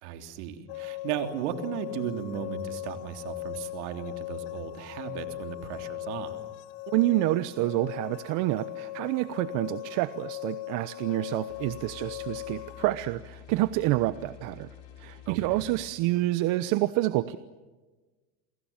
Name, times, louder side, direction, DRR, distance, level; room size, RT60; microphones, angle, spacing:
voice 1, 0.0-6.4 15.3-15.6, right 9 dB, 75° right, 6 dB, 3.4 m, -36 dB
sound 1, 0.7-12.9, left 17 dB, 70° left, 1.6 m, -39 dB
voice 2, 6.9-17.4, right 17 dB, 60° right, 14 dB, 1.0 m, -28 dB
sound 2, 11.5-15.9, left 12 dB, 55° left, 7.8 m, -49 dB
29.0 x 23.5 x 7.4 m, 1.3 s
supercardioid pair, 110°, 35 cm